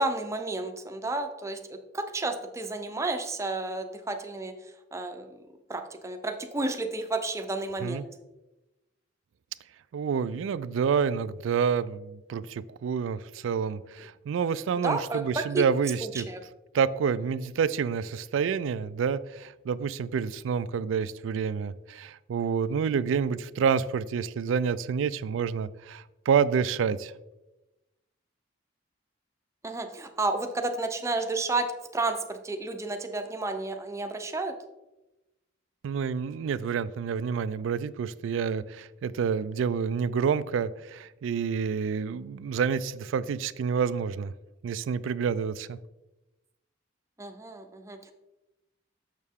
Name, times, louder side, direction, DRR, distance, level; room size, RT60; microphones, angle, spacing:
voice 1, 0.0-4.5 4.9-5.4 5.7-8.0 14.8-15.6 16.0-16.4 29.6-31.7 31.9-34.5 47.2-48.1, right 2 dB, 15° right, 6 dB, 0.6 m, -31 dB
voice 2, 9.9-16.3 16.7-27.1 35.8-44.3 44.6-45.8, right 6 dB, 85° right, 16 dB, 0.3 m, -28 dB
6.5 x 6.4 x 3.6 m, 1.0 s
head